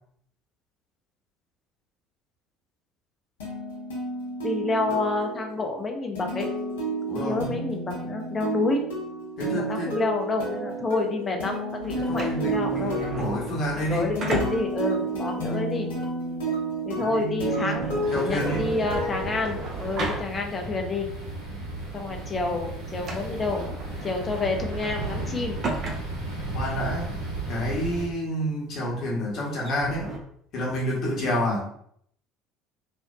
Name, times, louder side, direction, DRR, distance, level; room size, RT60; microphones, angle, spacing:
sound 1, 3.4-20.1, right 2 dB, 75° left, 0.6 m, -31 dB
voice 1, 4.4-6.5 7.1-8.8 9.5-13.0 13.9-15.9 16.9-21.1 21.9-23.6 24.0-25.6, left 3 dB, 30° left, 3 dB, 0.5 m, -28 dB
voice 2, 7.1-7.6 9.4-10.0 11.9-14.1 17.0-18.7 26.5-27.2 27.5-30.1 30.5-31.7, equal, 50° left, -3 dB, 1.0 m, -29 dB
sound 2, 11.8-20.8 21.2-21.3 21.9-22.2 22.5-22.6 22.9-30.2, right 2 dB, 45° right, 0.5 m, -36 dB
sound 3, 18.0-28.1, right 2 dB, 70° right, 0.9 m, -35 dB
2.5 x 2.1 x 2.3 m, 0.67 s
figure-of-eight pair, 60°, 0 cm